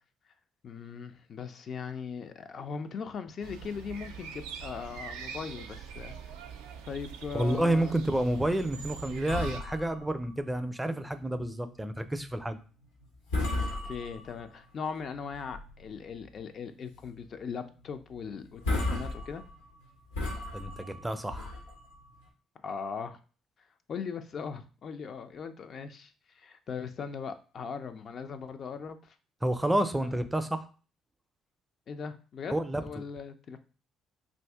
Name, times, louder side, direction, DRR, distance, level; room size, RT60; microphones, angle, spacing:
voice 1, 0.6-6.3 6.9-7.9 13.6-19.4 22.6-23.2 23.9-26.1 26.4-29.2 30.0-30.2 31.9-33.6, left 6 dB, 55° left, 8 dB, 0.4 m, -39 dB
sound 1, 3.4-9.6, right 7 dB, 80° right, 0.4 m, -43 dB
voice 2, 7.3-12.6 20.5-21.5 29.4-30.6 32.5-32.8, right 1 dB, 15° right, 10 dB, 0.4 m, -29 dB
sound 2, 9.3-11.1 11.4-11.6 12.1-12.3 12.8-13.0 13.3-14.6 15.1-16.0 16.4-16.5 16.9-17.1 17.4-17.5 18.2-18.3 18.5-22.2, left 2 dB, 90° left, 0.8 m, -35 dB
2.6 x 2.5 x 3.4 m, 0.38 s
hypercardioid pair, 55°, 0 cm